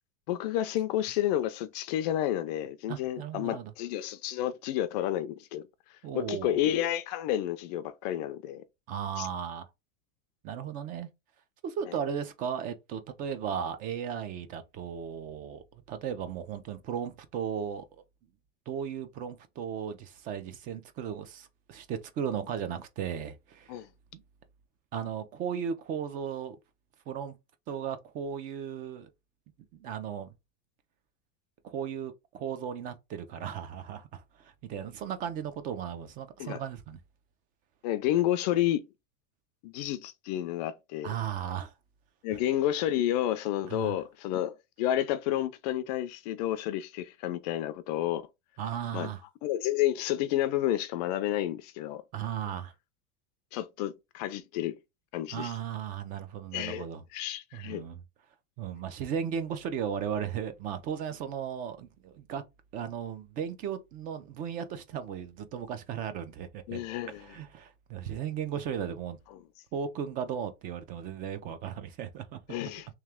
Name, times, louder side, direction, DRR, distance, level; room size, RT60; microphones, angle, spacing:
voice 1, 0.3-5.7 6.1-8.6 9.2-9.3 23.7-23.9 36.4-36.6 37.8-38.9 39.6-41.1 42.2-48.2 48.9-49.1 49.4-52.0 53.5-54.8 55.1-55.5 56.5-56.8 57.1-57.8 66.7-67.2 72.5-72.9, left 12 dB, 40° left, 0.4 m, -30 dB
voice 2, 2.9-3.7 6.0-6.6 8.9-9.7 10.4-11.1 11.6-18.0 18.7-23.8 24.1-24.2 24.9-26.6 27.1-27.4 27.7-29.1 29.8-30.3 31.6-37.0 41.0-41.7 42.3-42.4 43.7-44.0 48.6-49.2 52.1-52.7 55.3-57.0 57.5-58.0 58.6-62.4 62.7-66.8 67.2-69.2 69.7-72.4, right 8 dB, 25° right, 0.5 m, -36 dB
3.3 x 3.2 x 3.5 m
supercardioid pair, 170°, 31 cm